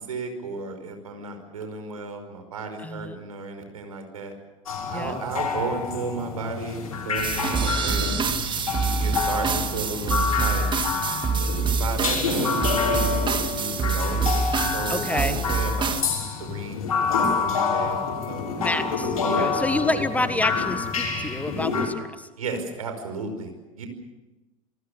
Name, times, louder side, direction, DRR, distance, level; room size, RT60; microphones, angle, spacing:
voice 1, 0.0-4.3 4.9-8.1 8.7-10.9 11.3-14.3 14.7-16.0 16.4-16.8 17.4-18.4 19.2-19.5 19.9-20.0 22.4-23.9, right 3 dB, 75° right, 6 dB, 5.2 m, -34 dB
voice 2, 2.8-3.2 4.9-5.1 14.9-15.4 18.6-22.3, left 2 dB, 10° left, 11 dB, 1.4 m, -28 dB
sound 1, 4.7-21.9, left 5 dB, 75° left, 6.1 m, -28 dB
sound 2, 7.2-16.0, right 5 dB, 25° right, 2.0 m, -26 dB
28.0 x 19.5 x 7.0 m, 1.1 s
figure-of-eight pair, 80°, 18 cm